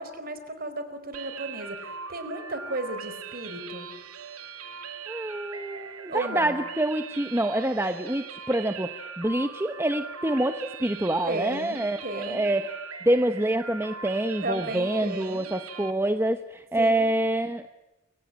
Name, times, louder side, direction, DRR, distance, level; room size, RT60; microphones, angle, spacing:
voice 1, 0.0-3.9 6.1-6.6 11.3-12.5 14.4-15.5 16.8-17.1, right 2 dB, 40° right, 10 dB, 4.4 m, -34 dB
sound 1, 1.1-15.9, right 6 dB, 80° right, 2.4 m, -40 dB
voice 2, 5.1-12.8 13.0-17.7, right 1 dB, 10° right, 8 dB, 0.9 m, -26 dB
28.5 x 24.5 x 8.6 m, 0.96 s
head